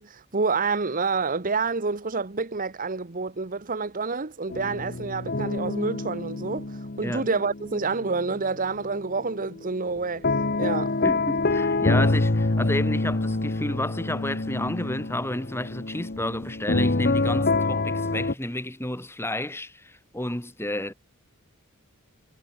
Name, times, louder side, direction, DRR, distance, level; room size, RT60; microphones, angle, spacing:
voice 1, 0.0-10.3 10.6-10.9, right 4 dB, 40° right, 1.1 m, -28 dB
sound 1, 4.5-8.5 8.9-18.3, left 2 dB, 45° left, 1.2 m, -26 dB
voice 2, 11.0-20.9, left 1 dB, 10° left, 2.6 m, -31 dB
head